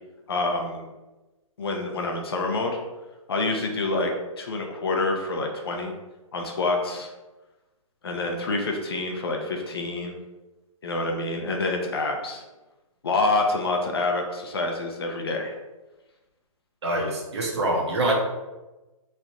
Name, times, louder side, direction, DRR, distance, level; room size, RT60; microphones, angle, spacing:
voice 1, 0.3-0.9 1.6-2.8 3.3-4.1 4.4-5.9 6.3-7.1 8.0-10.2 10.8-12.4 13.0-15.6, left 2 dB, 45° left, 2 dB, 0.6 m, -27 dB
voice 2, 16.8-18.2, right 1 dB, 50° right, 0 dB, 0.9 m, -25 dB
3.2 x 2.4 x 4.0 m, 1.1 s
hypercardioid pair, 170°, 18 cm